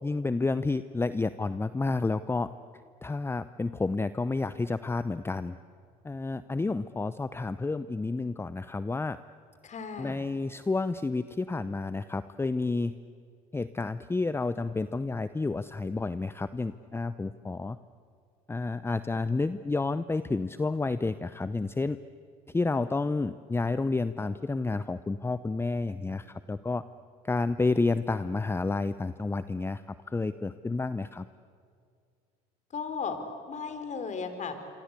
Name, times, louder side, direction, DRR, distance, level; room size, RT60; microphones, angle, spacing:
voice 1, 0.0-2.5 3.0-5.6 6.0-9.2 10.0-12.9 13.5-17.8 18.5-22.0 22.5-26.8 27.2-29.8 30.1-31.3, left 3 dB, 15° left, 14 dB, 0.7 m, -30 dB
voice 2, 9.6-10.2 32.7-33.2 33.5-34.5, left 5 dB, 40° left, 8 dB, 4.3 m, -35 dB
27.0 x 25.5 x 8.3 m, 2.3 s
supercardioid pair, 75°, 18 cm